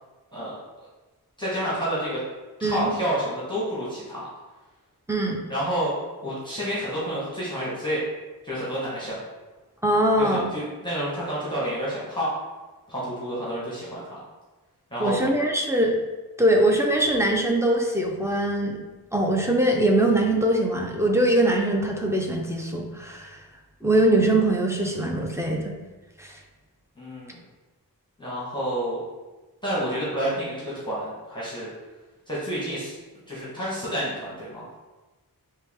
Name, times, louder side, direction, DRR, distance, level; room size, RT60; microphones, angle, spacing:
voice 1, 1.4-2.2 2.6-4.3 5.5-5.9 6.2-8.0 8.4-9.2 10.2-12.3 12.9-14.2 14.9-15.2 27.0-27.4 28.2-29.0 29.6-31.7 32.3-32.9 33.3-34.7, equal, 10° left, -9 dB, 1.3 m, -29 dB
voice 2, 2.6-2.9 5.1-5.4 9.8-10.5 15.0-16.0 16.4-18.8 19.1-23.4 23.8-25.7 26.2-26.3, right 1 dB, 5° right, 0 dB, 0.6 m, -22 dB
4.6 x 2.8 x 3.6 m, 1.2 s
wide cardioid pair, 80°, 38 cm